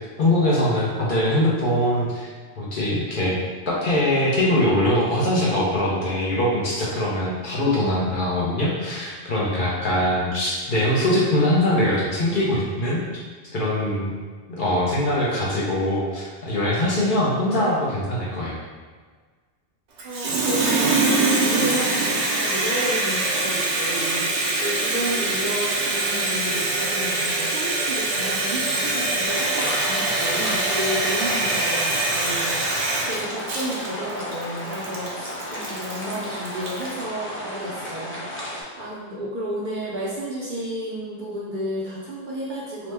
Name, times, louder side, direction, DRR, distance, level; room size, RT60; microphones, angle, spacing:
voice 1, 0.2-3.4 3.7-13.0 13.5-14.2 14.5-18.6, left 1 dB, 55° left, -5 dB, 0.7 m, -22 dB
voice 2, 20.0-42.9, right 1 dB, 60° right, -5 dB, 0.6 m, -32 dB
Water tap faucet, 20.0-36.9, right 2 dB, 85° right, 0.9 m, -24 dB
sound 1, 29.2-38.6, equal, 20° left, 0.4 m, -33 dB
2.9 x 2.1 x 3.3 m, 1.5 s
omnidirectional pair, 1.1 m